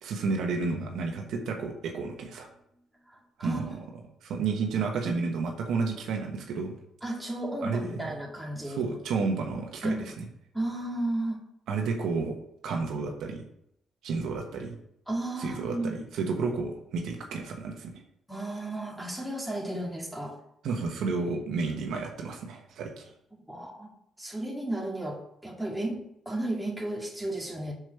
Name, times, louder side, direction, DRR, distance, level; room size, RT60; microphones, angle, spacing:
voice 1, 0.0-2.5 3.4-3.7 4.2-6.7 7.6-8.1 8.6-10.0 11.7-12.3 12.6-13.4 14.0-14.7 15.4-18.0 20.6-23.1, right 4 dB, 75° right, 2 dB, 1.3 m, -31 dB
sound 1, 0.6-2.8, left 3 dB, 65° left, 3.0 m, -48 dB
voice 2, 3.1-3.6 7.0-9.0 9.8-10.0 10.5-11.4 15.1-16.0 18.3-20.4 23.5-27.7, right 1 dB, 5° right, -2 dB, 2.2 m, -33 dB
6.3 x 4.6 x 6.5 m, 0.75 s
cardioid pair, 90°, 0 cm